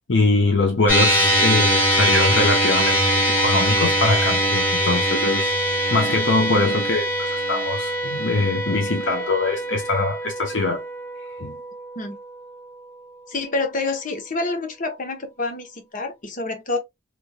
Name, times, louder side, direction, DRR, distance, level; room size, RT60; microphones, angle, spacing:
voice 1, 0.1-5.5 5.9-10.8 11.4-11.6, left 3 dB, 90° left, 0.9 m, -22 dB
sound 1, 0.9-13.4, equal, 10° left, 1.7 m, -22 dB
voice 2, 13.3-16.8, left 3 dB, 45° left, 0.9 m, -27 dB
3.3 x 3.0 x 2.3 m
head